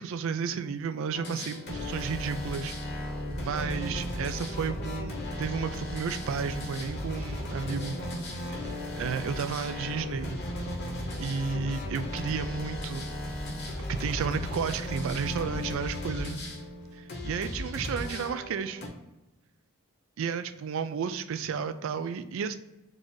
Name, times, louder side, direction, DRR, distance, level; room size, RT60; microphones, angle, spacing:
voice 1, 0.0-2.7 3.4-8.0 8.5-10.4 11.2-13.0 14.0-16.4 17.0-18.8 20.2-22.6, right 6 dB, 60° right, 10 dB, 0.3 m, -32 dB
sound 1, 1.1-18.9, left 1 dB, 50° left, 1.1 m, -35 dB
3.8 x 2.6 x 4.6 m, 0.97 s
head